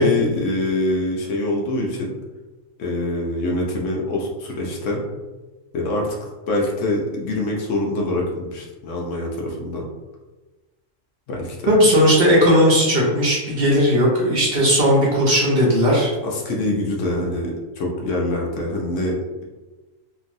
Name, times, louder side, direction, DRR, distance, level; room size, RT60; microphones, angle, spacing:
voice 1, 0.0-2.1 2.8-5.0 5.7-9.8 11.3-11.7 16.2-19.4, left 2 dB, 70° left, -2 dB, 1.0 m, -25 dB
voice 2, 11.7-16.1, equal, 55° right, -4 dB, 0.9 m, -16 dB
3.0 x 2.6 x 2.5 m, 1.2 s
omnidirectional pair, 1.4 m